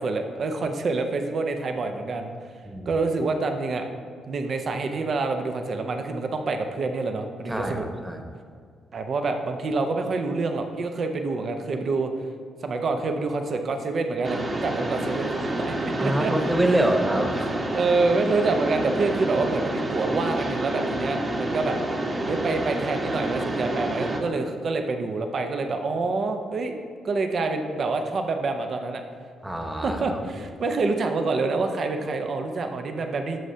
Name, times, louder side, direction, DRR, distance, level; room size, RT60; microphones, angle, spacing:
voice 1, 0.0-2.3 2.9-3.8 4.3-7.9 8.9-12.1 12.6-16.3 17.7-21.8 22.3-26.7 27.0-29.0 29.8-33.4, right 3 dB, 50° right, 5 dB, 0.8 m, -27 dB
voice 2, 7.5-8.4 16.0-17.5 29.4-30.4, right 1 dB, 10° right, 4 dB, 1.3 m, -26 dB
Mechanisms, 14.2-24.2, right 1 dB, 35° right, 1.5 m, -28 dB
12.5 x 7.2 x 2.8 m, 2.1 s
hypercardioid pair, 40°, 0 cm